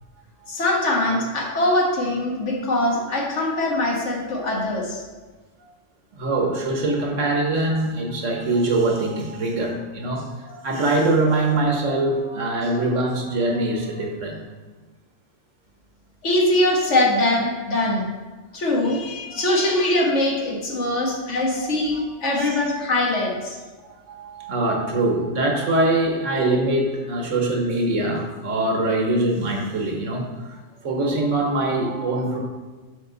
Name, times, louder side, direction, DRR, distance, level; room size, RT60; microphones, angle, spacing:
voice 1, 0.5-5.0 16.2-18.0 18.5-23.6, left 1 dB, 75° left, -1 dB, 1.7 m, -22 dB
voice 2, 6.2-14.4 19.3-19.7 21.0-21.1 21.9-22.0 22.3-22.6 23.8-32.4, right 2 dB, 80° right, 1 dB, 1.5 m, -23 dB
7.2 x 5.7 x 3.9 m, 1.3 s
omnidirectional pair, 1.2 m